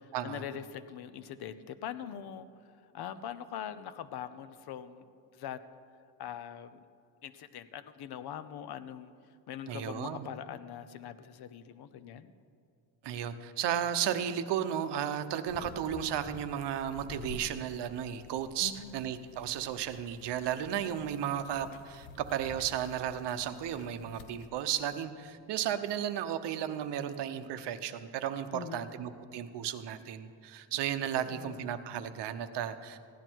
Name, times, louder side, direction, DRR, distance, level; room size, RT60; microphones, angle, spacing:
voice 1, 0.0-2.5 2.9-5.1 5.3-5.6 6.2-6.8 7.2-9.1 9.5-12.3 18.6-19.0 28.5-28.9 31.1-31.7, left 9 dB, 55° left, 13 dB, 0.7 m, -42 dB
voice 2, 9.7-10.3 13.0-33.0, right 9 dB, 60° right, 9 dB, 0.9 m, -34 dB
sound 1, 15.5-24.5, left 5 dB, 80° left, 0.9 m, -50 dB
16.0 x 11.0 x 4.6 m, 2.4 s
cardioid pair, 140°, 47 cm